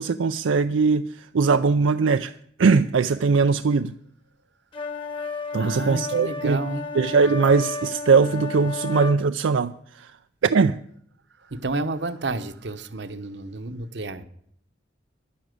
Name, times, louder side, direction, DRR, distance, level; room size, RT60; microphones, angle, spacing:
voice 1, 0.0-2.3 2.6-3.9 5.5-6.6 7.0-10.1 10.4-10.8, right 4 dB, 85° right, 9 dB, 0.4 m, -20 dB
sound 1, 4.7-9.2, left 3 dB, 25° left, 1.1 m, -32 dB
voice 2, 5.5-6.9 11.4-14.2, right 2 dB, 65° right, 11 dB, 1.0 m, -31 dB
11.0 x 10.0 x 7.7 m, 0.67 s
head